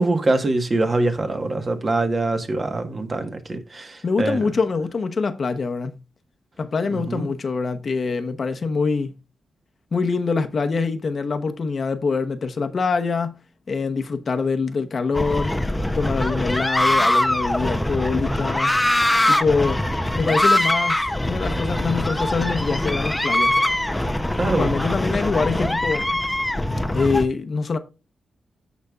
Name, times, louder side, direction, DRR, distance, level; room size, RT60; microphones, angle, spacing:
voice 1, 0.0-4.4 6.9-7.3 24.4-24.7, right 2 dB, 30° right, 1.3 m, -23 dB
voice 2, 4.0-5.9 6.6-9.1 9.9-13.4 13.7-15.5 15.9-18.8 19.3-19.8 20.2-23.6 24.5-26.2 26.9-27.8, left 4 dB, 45° left, 0.9 m, -24 dB
sound 1, 15.1-27.3, left 1 dB, 10° left, 0.7 m, -22 dB
14.5 x 5.1 x 2.4 m
cardioid pair, 110°, 0 cm